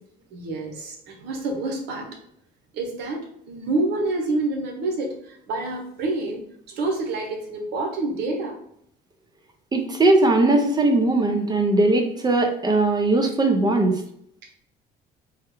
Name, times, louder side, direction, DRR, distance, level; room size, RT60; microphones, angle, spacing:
voice 1, 0.3-2.2 2.7-8.6, right 2 dB, 80° right, 2 dB, 0.8 m, -28 dB
voice 2, 9.7-14.0, right 2 dB, 25° right, 4 dB, 0.6 m, -19 dB
3.5 x 2.2 x 3.0 m, 0.70 s
cardioid pair, 110°, 17 cm